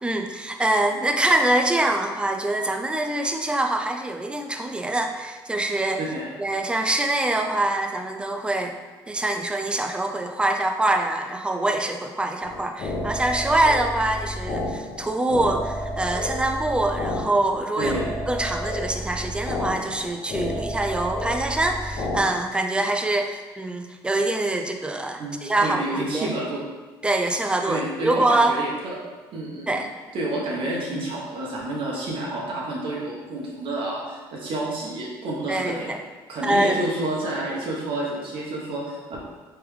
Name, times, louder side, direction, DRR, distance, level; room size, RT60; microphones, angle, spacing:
voice 1, 0.0-6.0 6.4-8.8 9.1-26.3 27.0-28.5 29.7-29.9 35.5-36.0 36.4-36.8, right 2 dB, 10° right, 4 dB, 0.4 m, -24 dB
voice 2, 6.0-6.3 17.8-18.0 25.2-26.6 27.6-28.7 29.3-29.8 30.1-35.9 36.3-39.2, right 1 dB, 60° right, -4 dB, 0.9 m, -29 dB
sound 1, 12.4-22.2, left 1 dB, 60° left, 1.0 m, -31 dB
3.4 x 3.4 x 3.2 m, 1.3 s
cardioid pair, 95°, 10 cm